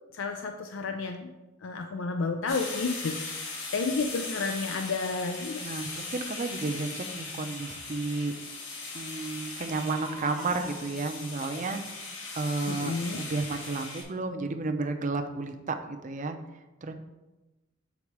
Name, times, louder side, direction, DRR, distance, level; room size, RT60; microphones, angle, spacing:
voice 1, 0.1-1.3 1.6-5.6 12.7-13.2, left 4 dB, 90° left, 5 dB, 0.5 m, -31 dB
sound 1, 2.5-14.0, left 3 dB, 70° left, 1.7 m, -39 dB
Crying sobbing, 3.3-3.4 5.9-6.1 7.7-7.8 8.3-8.4 8.6-8.7 9.7-10.8 11.8-12.1 12.7-12.8, right 1 dB, ahead, 0.8 m, -44 dB
voice 2, 5.6-8.3 8.9-11.8 12.3-16.4 16.8-16.9, right 3 dB, 40° right, 6 dB, 0.6 m, -32 dB
7.2 x 4.1 x 4.8 m, 1.1 s
head